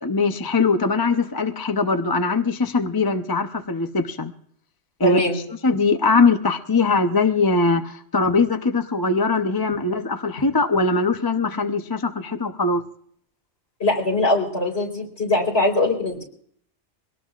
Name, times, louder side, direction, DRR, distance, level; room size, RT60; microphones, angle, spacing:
voice 1, 0.0-4.3 5.0-5.2 5.6-12.8, left 3 dB, 20° left, 6 dB, 0.7 m, -21 dB
voice 2, 5.0-5.4 13.8-16.2, left 2 dB, 55° left, 0 dB, 4.3 m, -21 dB
24.0 x 18.0 x 2.5 m, 0.63 s
omnidirectional pair, 1.3 m